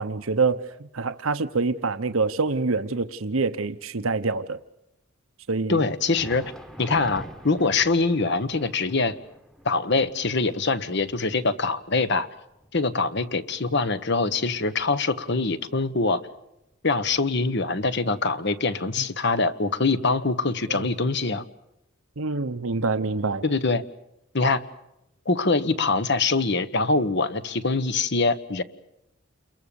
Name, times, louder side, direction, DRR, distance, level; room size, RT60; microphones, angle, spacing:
voice 1, 0.0-4.6 5.5-5.8 20.7-20.9 22.2-23.4, right 4 dB, 80° right, 0.9 m, -26 dB
voice 2, 5.7-6.5 6.8-9.1 9.6-12.3 12.7-16.2 16.8-21.4 23.4-23.8 24.3-24.6 25.2-28.6, left 3 dB, 55° left, 1.3 m, -24 dB
Thunder, 6.0-15.4 15.7-15.9 16.6-16.7 17.7-17.8, equal, ahead, 1.3 m, -46 dB
29.5 x 22.5 x 7.1 m
head